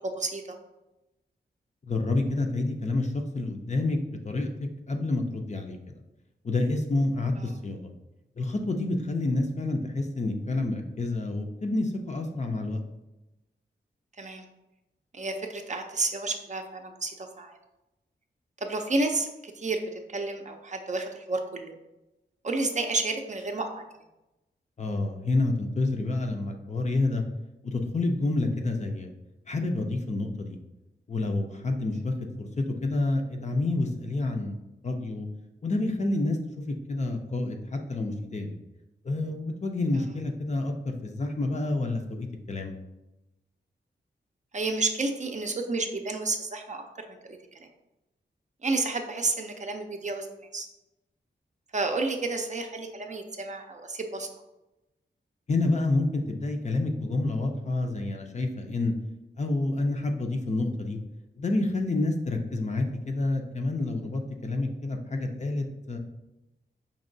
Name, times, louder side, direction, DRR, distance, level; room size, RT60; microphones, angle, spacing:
voice 1, 0.0-0.6 7.4-7.5 14.2-14.5 15.1-17.6 18.6-21.7 22.4-23.8 44.5-46.8 47.1-47.4 48.6-50.3 50.5-50.7 51.7-54.3, right 3 dB, 40° right, 4 dB, 0.5 m, -31 dB
voice 2, 1.9-5.8 6.4-7.9 8.4-12.8 24.8-27.2 27.6-29.1 29.5-30.6 31.1-34.6 34.8-35.3 35.6-38.6 39.0-42.7 55.5-58.9 59.4-61.0 61.4-66.0, left 2 dB, 40° left, 4 dB, 0.5 m, -28 dB
5.2 x 2.8 x 2.6 m, 0.97 s
wide cardioid pair, 75°, 19 cm